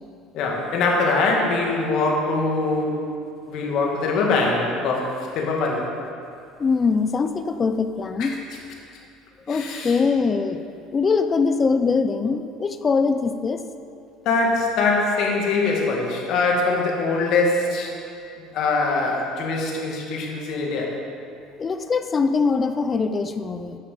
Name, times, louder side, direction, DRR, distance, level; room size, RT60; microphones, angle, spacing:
voice 1, 0.3-3.1 3.5-5.9 8.2-8.3 9.5-10.0 14.2-17.9 18.5-21.0, left 3 dB, 60° left, -1 dB, 2.1 m, -23 dB
voice 2, 6.6-8.3 9.5-10.6 10.9-13.6 21.6-23.8, left 4 dB, 25° left, 9 dB, 0.6 m, -22 dB
11.0 x 5.8 x 7.5 m, 2.5 s
supercardioid pair, 115°, 0 cm